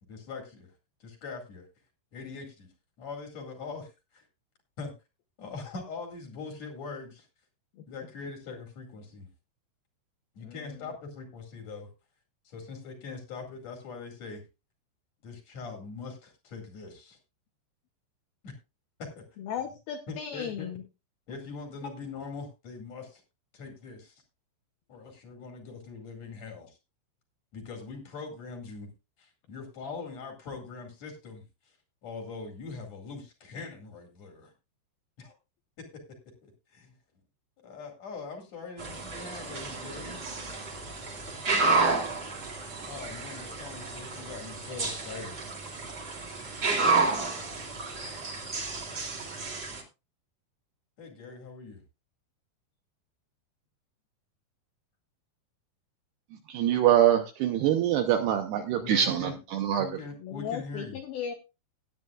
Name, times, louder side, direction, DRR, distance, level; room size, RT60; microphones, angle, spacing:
voice 1, 0.1-0.7 1.0-1.7 2.1-2.7 3.0-4.3 4.8-4.9 5.4-7.3 7.9-9.3 10.3-11.9 12.4-14.4 15.2-17.2 18.4-18.5 19.0-19.2 20.1-20.7 21.3-23.2 23.5-24.2 24.9-26.8 27.5-28.9 29.2-31.8 32.0-34.5 35.2-35.3 36.4-36.9 37.6-40.2 42.8-45.4 51.0-51.8 58.8-59.4 59.8-61.0, left 4 dB, 45° left, 2 dB, 2.6 m, -42 dB
voice 2, 19.4-20.8 60.2-61.3, left 8 dB, 90° left, 7 dB, 2.1 m, -36 dB
sound 1, 38.8-49.8, right 3 dB, 35° right, 2.1 m, -31 dB
voice 3, 56.5-59.9, right 10 dB, 75° right, 6 dB, 2.5 m, -24 dB
18.0 x 9.5 x 2.4 m, 0.27 s
omnidirectional pair, 5.6 m